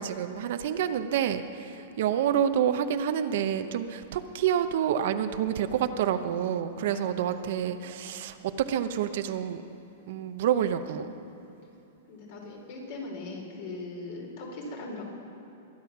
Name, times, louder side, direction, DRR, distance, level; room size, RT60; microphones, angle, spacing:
voice 1, 0.0-9.6 10.1-11.1, right 9 dB, 60° right, 9 dB, 0.8 m, -28 dB
voice 2, 6.8-7.4 8.0-8.2 12.1-15.0, left 2 dB, 55° left, 0 dB, 3.6 m, -40 dB
22.5 x 9.1 x 5.9 m, 2.9 s
hypercardioid pair, 145°, 0 cm